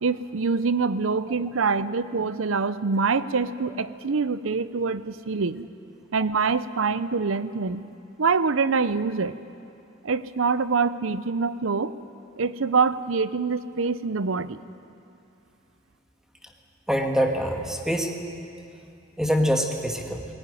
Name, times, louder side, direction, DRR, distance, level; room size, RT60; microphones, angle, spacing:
voice 1, 0.0-5.7 6.1-7.9 8.2-9.4 10.0-11.9 12.4-14.6, right 4 dB, 70° right, 15 dB, 0.7 m, -25 dB
voice 2, 16.9-18.1 19.2-20.3, equal, 5° right, 3 dB, 1.8 m, -24 dB
19.5 x 18.0 x 10.0 m, 2.6 s
head